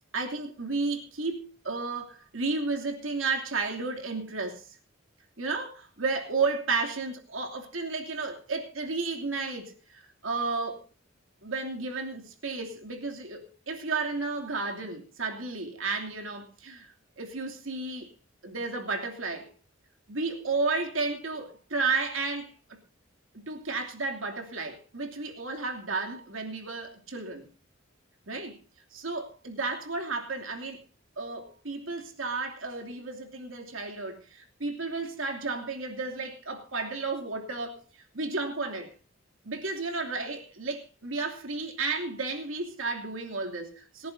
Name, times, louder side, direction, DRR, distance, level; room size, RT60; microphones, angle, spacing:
voice 1, 0.1-4.8 5.4-10.8 11.4-18.1 18.4-19.5 20.1-22.6 23.5-27.5 28.3-28.6 28.9-30.8 31.2-38.9 39.4-44.1, right 3 dB, 85° right, 2.8 m, -33 dB
28.0 x 11.0 x 2.7 m
head